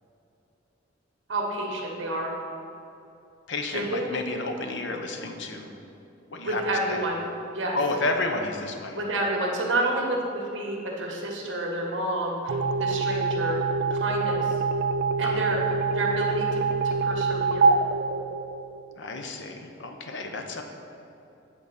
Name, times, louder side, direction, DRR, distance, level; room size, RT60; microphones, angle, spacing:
voice 1, 1.3-2.3 3.7-4.2 6.4-7.2 7.5-7.8 8.9-13.6 13.9-14.4 15.2-15.6 15.9-17.7, right 1 dB, 75° right, -1 dB, 1.5 m, -29 dB
voice 2, 3.5-5.7 6.3-6.6 6.9-7.0 7.7-9.0 15.2-15.4 19.0-20.6, left 2 dB, 65° left, 4 dB, 0.8 m, -31 dB
sound 1, 12.5-19.0, right 4 dB, 55° right, 0.3 m, -25 dB
8.6 x 4.0 x 7.0 m, 2.8 s
head